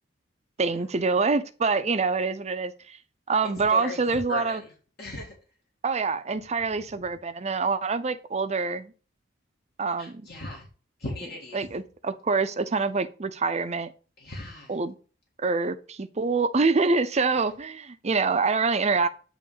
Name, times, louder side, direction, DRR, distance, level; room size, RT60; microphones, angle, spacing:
voice 1, 0.6-3.0 3.3-4.6 5.8-8.9 9.8-10.3 11.5-13.9 14.7-15.0 15.4-19.1, right 4 dB, 35° right, 0.6 m, -26 dB
voice 2, 3.7-4.7 5.0-5.3 10.0-10.7 11.0-11.6 14.2-14.7, left 2 dB, 60° left, 1.9 m, -37 dB
8.4 x 3.2 x 5.5 m
head